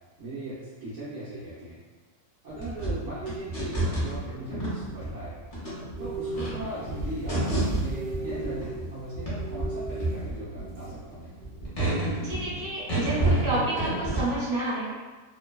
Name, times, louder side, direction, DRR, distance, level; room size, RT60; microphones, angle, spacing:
voice 1, 0.2-1.8 2.4-5.4 6.0-11.3, right 1 dB, 60° right, -10 dB, 0.9 m, -38 dB
sound 1, 2.5-8.9 9.1-14.2, right 2 dB, 35° left, 0.7 m, -29 dB
sound 2, 6.0-11.1 11.4-11.7, right 3 dB, 85° right, 1.1 m, -38 dB
voice 2, 12.2-14.9, right 1 dB, 25° right, -10 dB, 0.8 m, -30 dB
3.0 x 2.1 x 2.3 m, 1.3 s
omnidirectional pair, 1.6 m